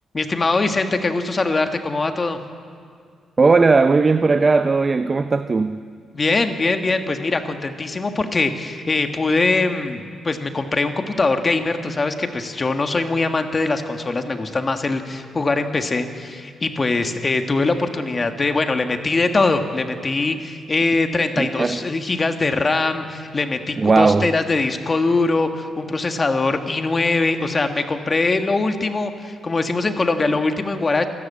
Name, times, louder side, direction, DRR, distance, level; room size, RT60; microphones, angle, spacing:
voice 1, 0.1-2.4 6.1-31.1, left 3 dB, 30° left, 6 dB, 1.5 m, -22 dB
voice 2, 3.4-5.8 21.4-21.8 23.8-24.3, right 4 dB, 30° right, 10 dB, 0.6 m, -17 dB
27.5 x 12.5 x 8.5 m, 2.1 s
cardioid pair, 115°, 0 cm